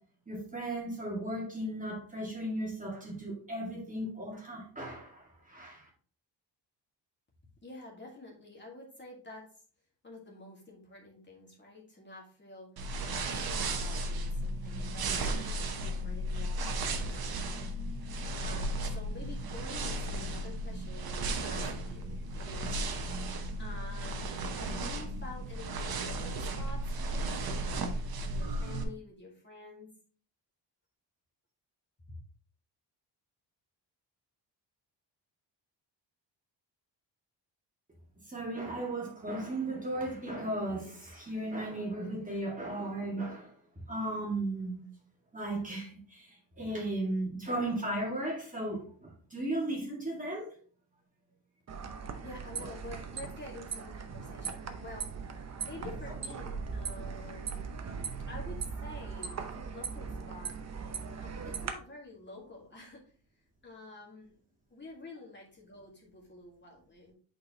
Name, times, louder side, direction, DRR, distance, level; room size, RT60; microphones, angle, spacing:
voice 1, 0.3-5.9 38.3-43.5 43.9-44.8 45.3-50.6, right 1 dB, 20° right, -2 dB, 2.0 m, -36 dB
voice 2, 7.6-9.5 10.0-12.7 13.2-17.5 18.3-22.7 23.6-27.9 28.2-29.9 52.2-57.7 58.3-60.6 60.9-63.0 63.6-64.3 64.7-67.1, left 2 dB, 25° left, -2 dB, 1.9 m, -49 dB
sound 1, 12.8-28.8, right 1 dB, 55° right, 1.1 m, -35 dB
sound 2, 51.7-61.7, right 5 dB, 40° right, 0.8 m, -39 dB
8.3 x 4.4 x 2.9 m, 0.43 s
cardioid pair, 135°, 43 cm